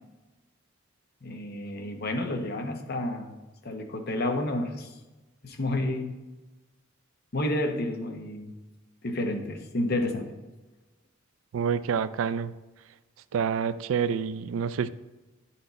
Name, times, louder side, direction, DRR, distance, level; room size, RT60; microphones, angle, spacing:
voice 1, 1.2-3.3 3.6-4.9 5.4-6.1 7.3-8.5 9.0-10.3, left 1 dB, 55° left, 4 dB, 0.9 m, -30 dB
voice 2, 11.5-12.5 13.3-14.9, right 7 dB, 85° right, 15 dB, 0.3 m, -27 dB
10.0 x 4.3 x 4.0 m, 1.1 s
head